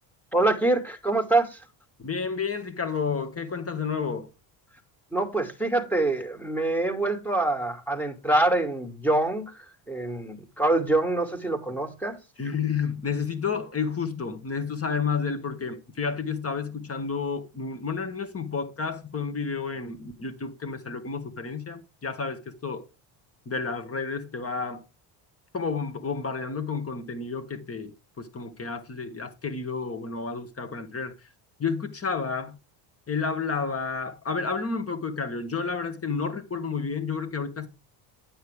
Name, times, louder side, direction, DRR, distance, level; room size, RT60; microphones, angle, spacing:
voice 1, 0.3-1.6 5.1-12.2, right 2 dB, 5° left, 2.5 m, -25 dB
voice 2, 2.0-4.3 12.4-22.9 23.5-24.8 25.5-31.3 31.6-32.6 33.1-37.7, left 5 dB, 30° left, 2.1 m, -31 dB
9.4 x 8.0 x 3.5 m
supercardioid pair, 95°, 49 cm